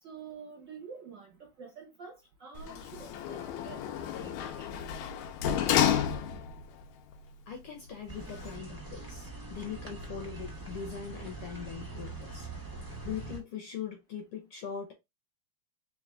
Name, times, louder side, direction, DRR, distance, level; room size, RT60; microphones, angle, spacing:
voice 1, 0.0-4.7 12.8-12.9, right 6 dB, 50° right, 1.5 m, -48 dB
Sliding door, 2.6-6.7 7.1-7.2, left 9 dB, 80° left, 1.9 m, -31 dB
voice 2, 7.5-12.5 13.0-14.9, left 7 dB, 65° left, 1.5 m, -41 dB
sound 1, 8.1-13.4, right 3 dB, 25° right, 0.4 m, -43 dB
4.7 x 3.0 x 3.7 m
omnidirectional pair, 3.4 m